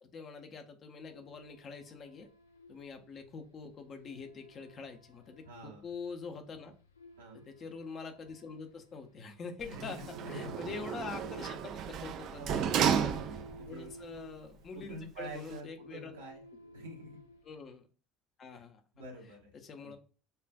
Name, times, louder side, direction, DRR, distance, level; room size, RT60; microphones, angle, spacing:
voice 1, 0.0-2.3 2.7-6.7 7.3-11.6 11.9-16.1 17.4-17.9 18.4-18.8 19.5-20.0, left 4 dB, 35° left, 6 dB, 0.7 m, -45 dB
sound 1, 1.0-17.7, equal, 80° left, 0.5 m, -56 dB
voice 2, 5.4-5.9 7.2-7.4 9.6-10.5 12.4-12.8 13.6-13.9 14.7-16.4 16.7-17.2 18.9-19.5 19.8-20.0, right 1 dB, 75° right, -1 dB, 1.1 m, -46 dB
Sliding door, 9.6-13.7 14.2-14.3, right 8 dB, 45° right, 0.4 m, -33 dB
6.7 x 2.4 x 2.3 m, 0.37 s
figure-of-eight pair, 65°, 0 cm